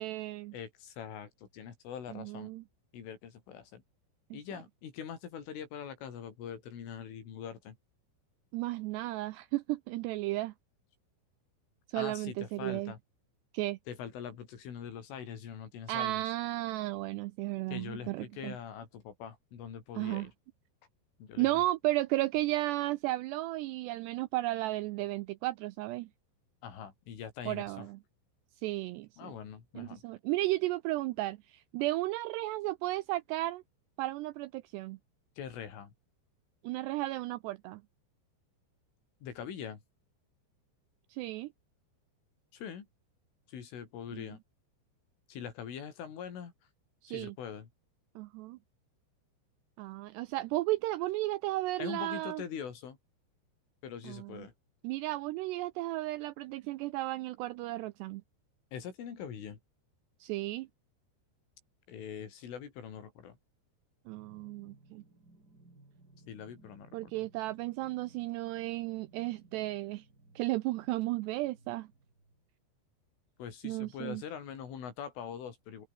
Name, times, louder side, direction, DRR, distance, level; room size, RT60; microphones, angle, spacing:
voice 1, 0.0-0.5 2.1-2.6 4.3-4.4 8.5-10.5 11.9-12.9 13.5-13.8 15.9-18.6 20.0-20.3 21.4-26.1 27.5-28.0 28.6-29.3 29.8-33.6 34.0-35.0 36.6-37.8 41.1-41.5 44.1-44.3 47.0-47.4 48.2-48.6 49.8-52.4 54.0-54.5 54.8-58.2 60.2-60.7 64.1-65.0 66.9-70.0 70.4-71.9 73.6-74.2, right 18 dB, 90° right, 2.4 m, -34 dB
voice 2, 0.5-2.5 2.9-3.8 4.3-7.8 11.9-13.0 13.9-16.2 17.7-20.3 21.2-21.6 26.6-27.9 29.2-30.0 35.4-35.9 39.2-39.8 42.5-42.9 43.5-44.4 45.3-46.5 47.1-47.7 51.8-53.0 53.8-54.5 58.7-59.6 61.9-63.4 66.3-67.1 73.4-75.9, left 8 dB, 85° left, 6.6 m, -43 dB
sound 1, 64.1-72.5, right 2 dB, 20° right, 6.1 m, -61 dB
open air
omnidirectional pair, 5.5 m